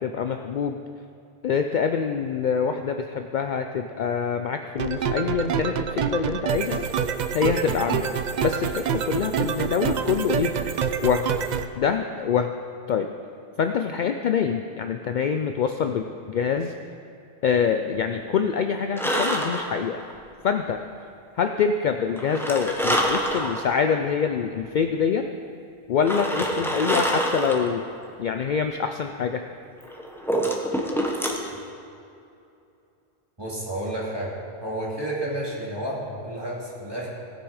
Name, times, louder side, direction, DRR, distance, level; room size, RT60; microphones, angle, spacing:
voice 1, 0.0-0.8 1.4-6.8 7.3-8.1 8.4-10.5 11.0-11.2 11.8-12.5 12.9-13.1 13.6-16.7 17.4-20.0 20.4-20.8 21.4-25.2 25.9-27.8 28.2-29.4, left 6 dB, 60° left, 6 dB, 0.6 m, -25 dB
sound 1, 4.8-11.7, right 7 dB, 55° right, 0.5 m, -26 dB
sound 2, 19.0-20.1 22.2-23.7 24.3-24.4 26.0-27.7 29.8-31.5, equal, ahead, 0.9 m, -26 dB
voice 2, 33.4-34.3 34.6-37.1, right 1 dB, 25° right, -5 dB, 2.4 m, -31 dB
17.5 x 6.2 x 4.8 m, 2.6 s
omnidirectional pair, 1.1 m